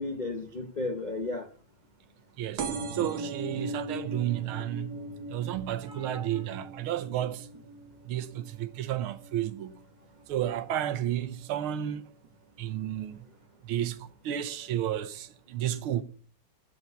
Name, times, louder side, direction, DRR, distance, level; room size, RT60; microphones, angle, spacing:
voice 1, 0.0-1.5 5.8-6.4, left 2 dB, 45° left, 0.5 m, -34 dB
voice 2, 2.4-7.5 8.0-9.8 10.3-12.1 12.6-13.2 13.6-16.0, right 11 dB, 75° right, 1.6 m, -32 dB
sound 1, 2.6-9.8 10.3-10.8 11.6-11.7 11.9-12.0 12.2-12.3, right 2 dB, 55° right, 1.4 m, -39 dB
9.0 x 8.1 x 7.0 m
omnidirectional pair, 2.4 m